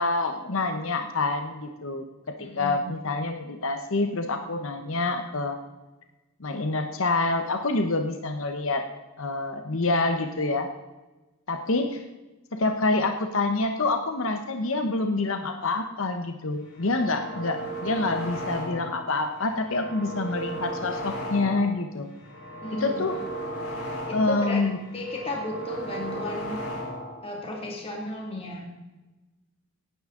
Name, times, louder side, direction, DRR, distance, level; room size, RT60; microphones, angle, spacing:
voice 1, 0.0-2.0 2.4-5.6 6.4-8.8 9.2-10.7 11.5-12.0 12.5-22.1 22.7-23.2 24.1-24.8, left 3 dB, 60° left, 5 dB, 1.0 m, -27 dB
voice 2, 2.4-2.9 22.6-23.1 24.1-24.7 24.9-26.6 27.2-28.7, left 1 dB, 25° left, -1 dB, 2.4 m, -34 dB
sound 1, 16.7-19.1 19.4-21.8 22.1-24.5 24.8-27.2, right 1 dB, 85° left, 3.2 m, -35 dB
17.5 x 9.6 x 3.8 m, 1.1 s
head